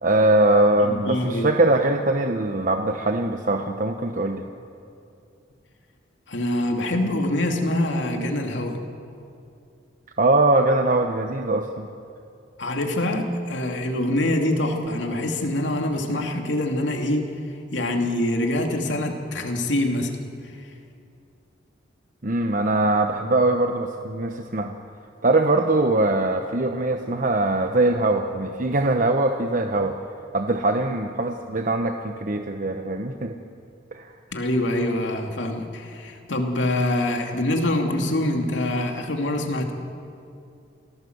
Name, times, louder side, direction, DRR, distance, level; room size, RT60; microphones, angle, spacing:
voice 1, 0.0-4.4 10.2-11.9 22.2-24.8 25.2-30.0 30.3-33.4 33.9-34.1, right 2 dB, 45° right, 5 dB, 1.0 m, -22 dB
voice 2, 0.8-1.5 6.3-8.8 12.6-17.2 17.7-20.2 34.3-39.7, left 1 dB, 85° left, 3 dB, 2.6 m, -25 dB
28.0 x 18.0 x 8.0 m, 2.6 s
head